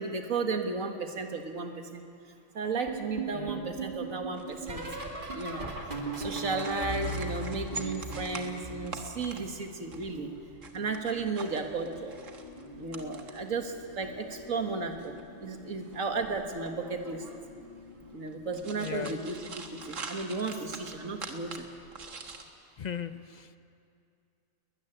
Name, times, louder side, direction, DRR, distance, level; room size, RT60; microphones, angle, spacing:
voice 1, 0.0-2.0 2.5-4.8 5.3-5.6 6.2-10.3 10.7-12.2 12.8-17.2 18.1-19.4 19.8-21.7, right 4 dB, 90° right, 4 dB, 2.1 m, -34 dB
sound 1, 2.9-9.6 9.9-11.5 12.5-12.9 13.1-13.5 15.0-15.3 15.6-15.9 17.4-17.5, right 3 dB, 40° right, 2.3 m, -39 dB
voice 2, 3.3-3.7 18.8-19.2 22.8-23.6, left 7 dB, 50° left, 12 dB, 0.5 m, -38 dB
sound 2, 4.3-22.4, right 4 dB, 70° right, 1.8 m, -46 dB
sound 3, 11.9-20.6, left 7 dB, 90° left, 1.9 m, -50 dB
21.0 x 14.0 x 10.0 m, 2.5 s
omnidirectional pair, 1.4 m